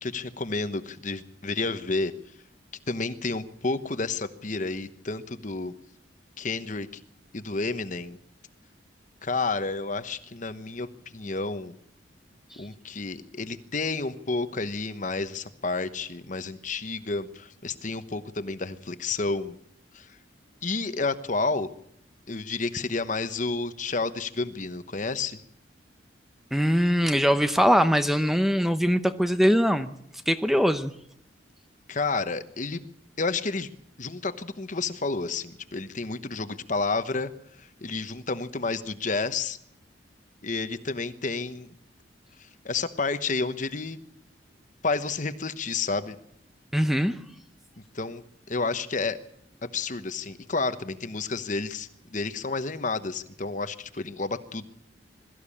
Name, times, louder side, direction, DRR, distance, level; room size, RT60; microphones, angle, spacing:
voice 1, 0.0-2.1 2.9-5.7 6.4-6.9 7.3-8.2 9.2-10.9 11.1-11.7 12.6-19.5 19.9-20.1 20.6-21.7 22.3-25.4 31.9-32.9 33.2-33.7 34.0-37.3 37.6-39.6 40.4-41.7 42.6-44.0 44.8-46.2 47.9-48.2 48.5-49.2 49.6-54.7, left 3 dB, 45° left, 11 dB, 1.1 m, -30 dB
voice 2, 26.5-29.9 30.3-30.9 46.7-47.2, equal, ahead, 9 dB, 0.7 m, -22 dB
22.0 x 14.0 x 8.6 m, 0.74 s
head